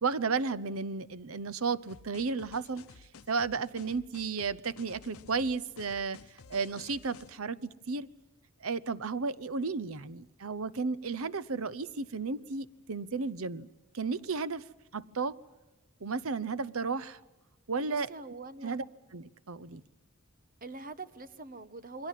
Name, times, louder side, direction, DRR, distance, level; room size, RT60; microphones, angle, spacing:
voice 1, 0.0-8.1 8.6-13.7 13.9-14.6 14.9-15.4 16.0-17.2 17.7-18.1 18.6-18.8 19.1-19.8, right 4 dB, 75° right, 0.8 m, -33 dB
sound 1, 1.9-7.3, left 4 dB, 85° left, 0.9 m, -53 dB
voice 2, 17.8-18.8 20.6-22.1, right 3 dB, 40° right, 1.2 m, -43 dB
28.5 x 22.0 x 7.5 m
head